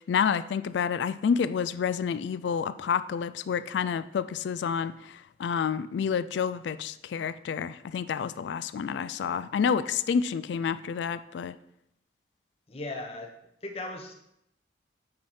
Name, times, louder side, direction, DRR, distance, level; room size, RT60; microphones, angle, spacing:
voice 1, 0.1-11.5, left 7 dB, 75° left, 14 dB, 0.3 m, -29 dB
voice 2, 12.7-13.3 13.6-14.1, left 2 dB, 30° left, 3 dB, 0.9 m, -37 dB
8.5 x 4.8 x 4.3 m, 0.79 s
head